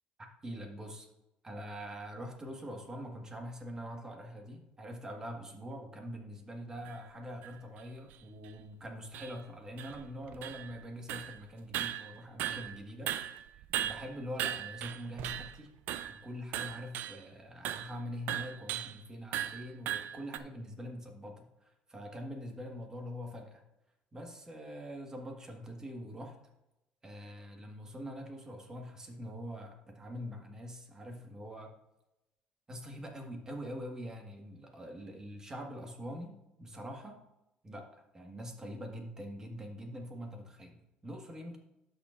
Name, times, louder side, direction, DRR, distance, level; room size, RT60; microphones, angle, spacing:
voice 1, 0.4-1.1 1.4-13.1 13.8-15.7 16.1-23.6 24.1-26.4 27.0-31.7 32.7-37.2 37.6-41.6, equal, 20° right, 3 dB, 1.5 m, -44 dB
Schmiede reinkommen, 6.8-6.9 7.4-7.5 8.1-8.2 8.4-8.5 9.1-9.4 9.8-10.8 11.1-11.4 11.7-12.8 13.1-15.6 15.9-16.2 16.5-17.2 17.6-17.9 18.3-19.0 19.3-20.4, right 12 dB, 75° right, 0.4 m, -37 dB
11.5 x 6.6 x 2.5 m, 0.91 s
cardioid pair, 125°, 3 cm